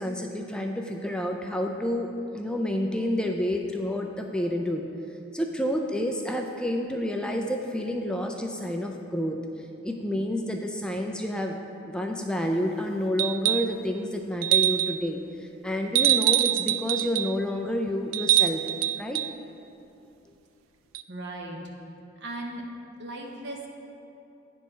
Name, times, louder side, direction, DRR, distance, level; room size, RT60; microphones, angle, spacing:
voice 1, 0.0-4.8 5.3-11.6 11.9-18.7 19.0-19.2, left 1 dB, 5° left, 2 dB, 0.3 m, -29 dB
sound 1, 13.2-13.8 14.4-15.0 15.9-17.3 18.1-19.3 20.9-21.0, right 13 dB, 80° right, 0.3 m, -24 dB
voice 2, 21.1-21.6 22.2-22.6 23.0-23.7, right 2 dB, 60° right, 0 dB, 1.0 m, -37 dB
9.3 x 4.6 x 5.4 m, 2.9 s
head